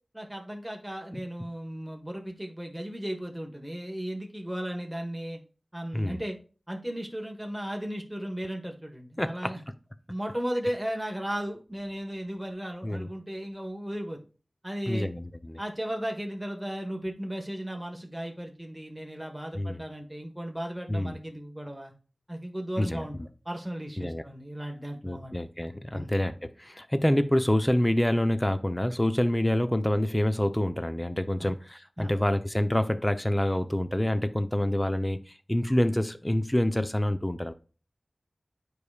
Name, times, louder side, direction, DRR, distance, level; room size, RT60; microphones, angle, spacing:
voice 1, 0.1-5.4 5.7-6.4 6.7-9.6 10.1-14.2 14.6-15.1 15.6-21.9 22.3-23.2 23.4-25.3 25.9-26.1 31.4-31.5 32.0-32.1, equal, 10° right, 1.4 m, -35 dB
voice 2, 9.2-9.5 12.8-13.1 14.9-15.6 19.5-19.8 20.9-21.2 22.8-23.1 24.0-24.2 25.0-35.2 35.5-37.5, left 1 dB, 15° left, 0.7 m, -27 dB
8.3 x 4.8 x 2.4 m
wide cardioid pair, 40°, 0 cm